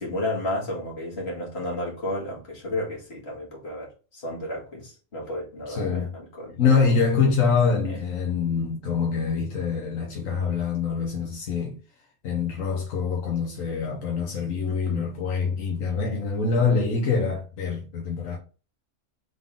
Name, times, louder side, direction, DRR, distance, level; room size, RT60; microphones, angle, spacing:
voice 1, 0.0-6.8 7.8-8.0 14.7-15.1, left 1 dB, 50° left, 2.1 m, -32 dB
voice 2, 5.7-6.1 6.6-11.8 12.2-18.4, left 5 dB, 80° left, 1.3 m, -25 dB
3.8 x 3.7 x 3.5 m
omnidirectional pair, 1.4 m